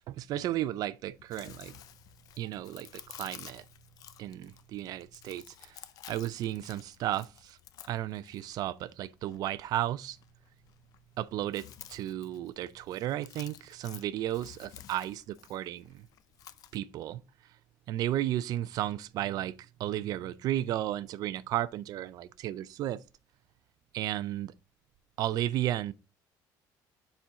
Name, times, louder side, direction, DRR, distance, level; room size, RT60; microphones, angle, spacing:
voice 1, 0.0-1.8 2.4-3.6 4.2-5.8 6.1-7.6 7.9-10.2 11.2-16.1 16.7-17.2 17.9-23.0 23.9-24.5 25.2-25.9, right 13 dB, 50° right, 0.4 m, -34 dB
Chewing mastication, 1.1-16.8, left 11 dB, 50° left, 0.5 m, -53 dB
7.0 x 4.4 x 3.6 m
cardioid pair, 155°, 8 cm